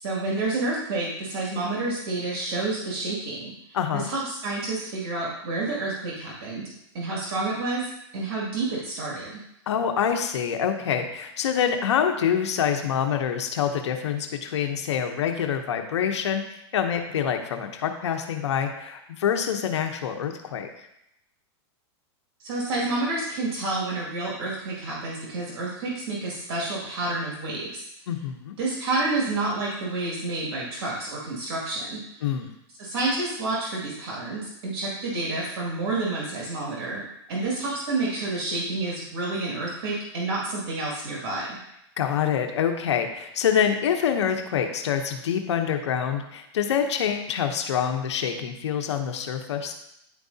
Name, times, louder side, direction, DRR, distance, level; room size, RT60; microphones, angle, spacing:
voice 1, 0.0-3.5 3.9-9.4 22.4-27.9 28.6-32.0 32.8-37.0 37.3-41.6, right 2 dB, 60° right, -4 dB, 2.2 m, -29 dB
voice 2, 3.7-4.1 9.7-20.7 28.1-28.6 32.2-32.5 42.0-49.7, left 8 dB, 85° left, 5 dB, 0.8 m, -26 dB
9.9 x 4.7 x 2.7 m, 0.81 s
supercardioid pair, 145°, 14 cm